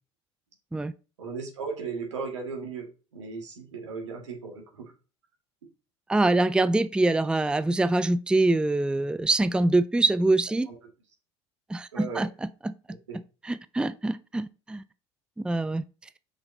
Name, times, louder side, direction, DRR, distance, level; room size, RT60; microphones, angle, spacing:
voice 1, 1.2-2.9 3.1-4.9 10.7-10.8 11.9-12.3 12.9-13.2, right 5 dB, 85° right, 2.0 m, -36 dB
voice 2, 6.1-10.7 11.7-12.3 12.6-12.7 13.5-14.8 15.4-15.8, right 2 dB, 5° right, 0.5 m, -24 dB
6.0 x 5.7 x 3.9 m
hypercardioid pair, 65°, 15 cm